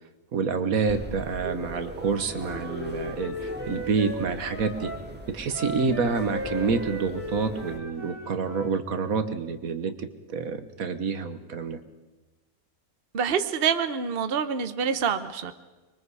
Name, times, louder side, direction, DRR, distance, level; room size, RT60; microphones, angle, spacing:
voice 1, 0.3-4.9 5.3-11.8, right 5 dB, 80° right, 9 dB, 1.7 m, -28 dB
sound 1, 0.9-7.8, right 1 dB, 5° right, 1.8 m, -40 dB
Wind instrument woodwind instrument, 2.0-5.0 5.5-8.8, equal, 20° left, 5.5 m, -37 dB
voice 2, 13.1-15.5, right 7 dB, 45° right, 10 dB, 1.1 m, -26 dB
26.0 x 22.5 x 4.9 m, 1.2 s
omnidirectional pair, 1.5 m